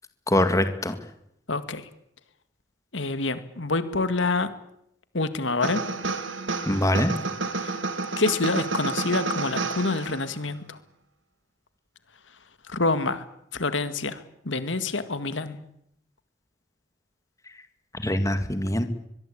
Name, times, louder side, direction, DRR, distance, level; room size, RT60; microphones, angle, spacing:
voice 1, 0.3-1.0 6.7-7.1 17.9-18.8, left 1 dB, 15° left, 9 dB, 2.1 m, -23 dB
voice 2, 1.5-1.9 2.9-4.5 5.1-5.8 7.6-7.8 8.2-10.8 12.7-13.3 13.5-15.6, left 3 dB, 85° left, 11 dB, 2.0 m, -27 dB
sound 1, 5.6-10.4, right 3 dB, 90° right, 2.4 m, -30 dB
24.0 x 22.0 x 8.7 m, 0.79 s
head